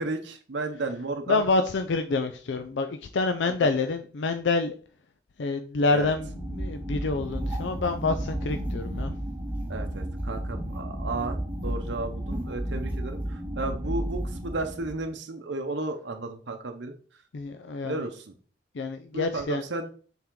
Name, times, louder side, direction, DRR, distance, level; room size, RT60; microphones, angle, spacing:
voice 1, 0.0-1.4 3.4-3.7 5.9-6.1 9.7-17.0 17.8-18.3 19.1-19.9, right 2 dB, 70° right, 0.7 m, -33 dB
voice 2, 1.3-4.7 5.4-9.1 17.3-18.0 18.7-19.6, left 3 dB, 70° left, 0.5 m, -27 dB
sound 1, 6.0-15.1, right 1 dB, 10° right, 0.9 m, -33 dB
7.1 x 3.6 x 3.7 m
head